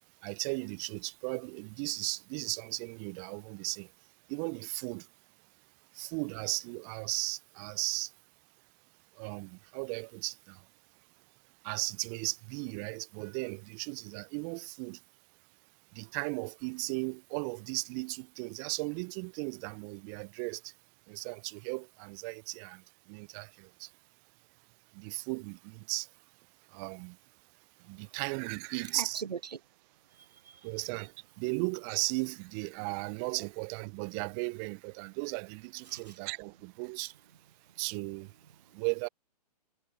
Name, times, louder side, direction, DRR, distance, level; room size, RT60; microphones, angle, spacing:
voice 1, 0.2-3.9 4.3-5.1 5.9-8.1 9.1-10.7 11.6-15.0 15.9-20.7 21.1-23.9 24.9-26.1 26.7-27.2 27.8-29.2 30.6-37.1 37.8-38.3 38.7-39.1, right 36 dB, 25° right, 0.5 m, -36 dB
voice 2, 28.9-29.6 30.0-30.7 35.8-36.2 37.6-37.8 38.4-38.8, right 6 dB, 75° right, 1.1 m, -43 dB
figure-of-eight pair, 120°, 21 cm